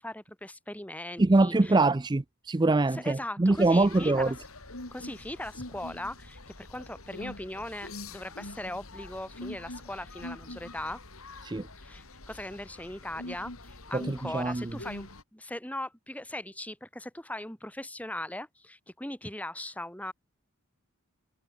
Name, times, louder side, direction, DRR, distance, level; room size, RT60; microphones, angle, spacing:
voice 1, 0.0-1.8 2.9-4.3 4.9-11.0 11.8-20.1, left 1 dB, 5° left, 2.2 m, -39 dB
voice 2, 1.2-4.3 11.4-11.7 13.9-14.6, right 2 dB, 20° right, 0.4 m, -24 dB
sound 1, 3.5-15.2, left 2 dB, 70° left, 4.4 m, -44 dB
head